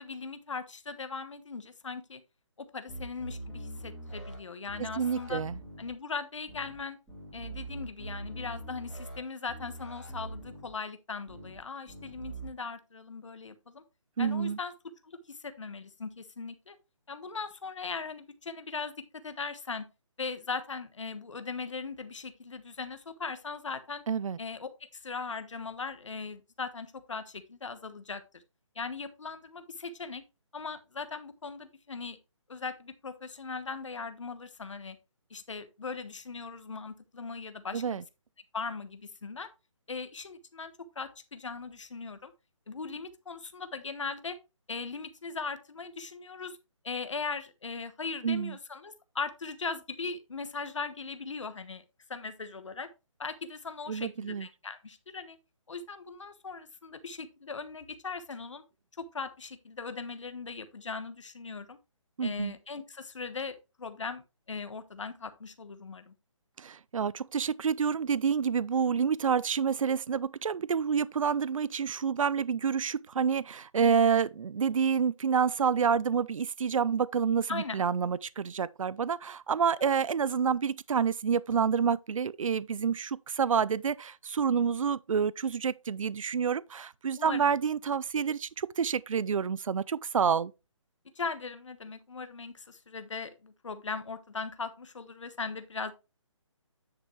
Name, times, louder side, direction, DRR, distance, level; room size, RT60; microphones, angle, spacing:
voice 1, 0.0-2.2 2.6-5.4 5.8-7.0 7.3-13.8 14.2-14.7 15.0-16.7 17.1-18.9 19.2-19.9 20.2-24.0 24.4-28.4 28.7-30.2 30.5-32.2 32.5-35.0 35.3-38.0 38.5-39.5 39.9-42.3 42.7-44.4 44.7-46.6 46.8-51.8 52.1-52.9 53.2-55.4 55.7-58.6 59.0-61.8 62.2-64.2 64.5-66.1 77.5-77.8 87.2-87.5 91.2-95.9, left 4 dB, 65° left, 1.2 m, -39 dB
sound 1, 2.9-4.4 4.7-5.9 6.5-6.8 7.1-9.2 9.5-10.7 11.3-11.6 11.9-12.5, right 1 dB, ahead, 1.8 m, -43 dB
voice 2, 5.0-5.6 14.2-14.6 24.1-24.4 37.7-38.0 48.2-48.5 53.9-54.5 62.2-62.5 66.6-90.5, right 6 dB, 80° right, 0.5 m, -28 dB
9.6 x 5.5 x 3.2 m
hypercardioid pair, 180°, 17 cm